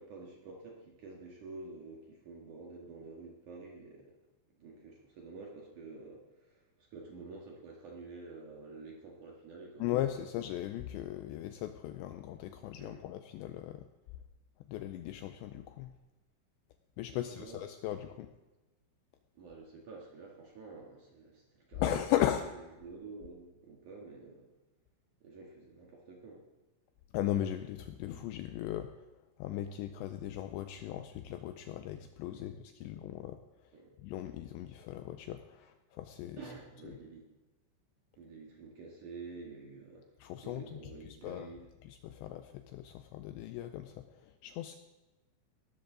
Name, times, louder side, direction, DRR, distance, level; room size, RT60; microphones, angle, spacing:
voice 1, 0.0-4.1 4.6-6.6 6.9-9.9 10.2-10.3 12.8-13.0 17.1-17.6 19.3-22.1 22.3-22.5 22.8-24.5 25.2-26.4 32.3-32.5 32.8-32.9 33.7-33.9 36.4-37.3 38.2-40.1 40.4-41.6, right 4 dB, 55° right, -1 dB, 2.4 m, -49 dB
voice 2, 9.8-13.8 14.7-15.9 17.0-18.3 21.8-22.5 27.1-28.9 29.4-33.4 34.0-36.4 40.2-40.8 41.2-41.5 41.9-44.8, left 12 dB, 90° left, 8 dB, 2.6 m, -37 dB
19.0 x 13.0 x 3.9 m, 1.1 s
omnidirectional pair, 5.7 m